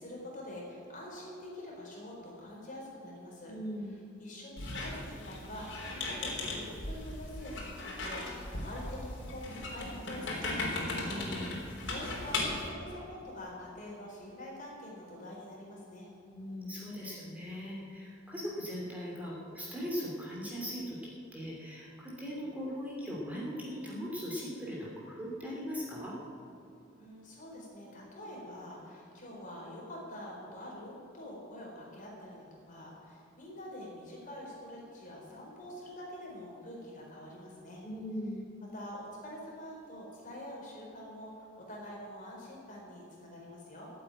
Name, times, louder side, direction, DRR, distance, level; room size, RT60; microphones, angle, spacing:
voice 1, 0.0-3.5 4.2-11.0 11.8-16.1 27.0-37.8 38.6-43.9, left 1 dB, 45° left, -3 dB, 4.5 m, -46 dB
voice 2, 3.5-4.0 11.0-11.6 16.3-21.0 21.3-26.2 37.8-38.5, equal, 10° right, -5 dB, 2.9 m, -39 dB
Squeak, 4.6-12.7, left 2 dB, 70° left, 3.6 m, -37 dB
14.5 x 8.2 x 9.2 m, 2.7 s
head